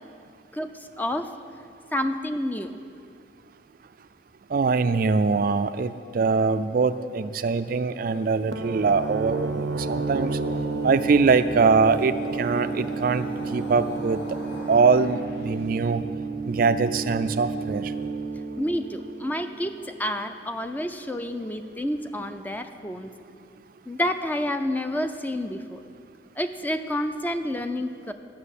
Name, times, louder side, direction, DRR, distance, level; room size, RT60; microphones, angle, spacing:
voice 1, 0.5-1.3 1.9-2.8 18.6-23.1 23.9-25.8 26.4-28.1, left 1 dB, 10° left, 8 dB, 0.5 m, -29 dB
voice 2, 4.5-10.4 10.8-14.2 14.7-16.0 16.5-17.9, right 4 dB, 50° right, 11 dB, 0.4 m, -23 dB
sound 1, 8.1-15.5, left 1 dB, 70° left, 2.5 m, -40 dB
sound 2, 8.5-20.0, right 4 dB, 90° right, 0.6 m, -31 dB
13.0 x 6.1 x 8.3 m, 2.2 s
head